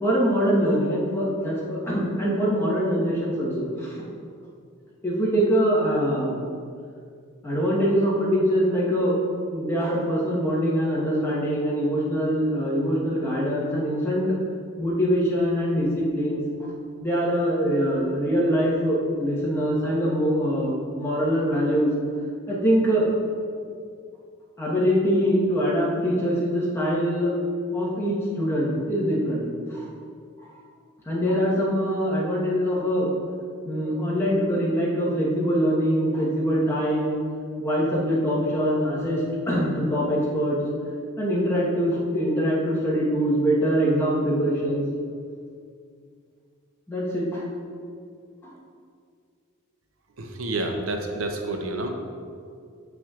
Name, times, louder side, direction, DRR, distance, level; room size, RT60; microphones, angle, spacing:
voice 1, 0.0-4.0 5.0-6.3 7.4-9.2 9.5-14.4 14.8-16.4 17.0-21.9 22.5-23.1 24.6-27.3 27.7-29.9 31.1-33.1 33.6-37.2 37.6-40.6 41.2-44.8 46.9-47.4 48.4-48.5, equal, 10° left, -6 dB, 1.2 m, -23 dB
voice 2, 50.2-51.9, right 2 dB, 85° right, 4 dB, 0.6 m, -29 dB
7.1 x 5.9 x 2.4 m, 2.3 s
head